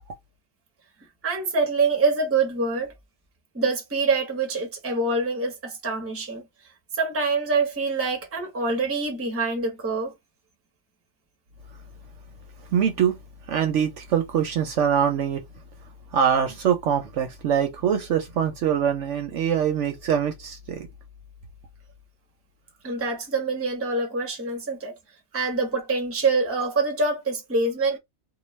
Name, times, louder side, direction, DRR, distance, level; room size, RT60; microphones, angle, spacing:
voice 1, 1.2-2.9 3.5-6.4 6.9-10.1 22.8-25.0 25.3-28.0, right 3 dB, 15° right, 0.6 m, -25 dB
voice 2, 12.7-13.2 13.5-15.4 16.1-20.9, right 8 dB, 65° right, 0.9 m, -23 dB
2.3 x 2.2 x 3.0 m
omnidirectional pair, 1.5 m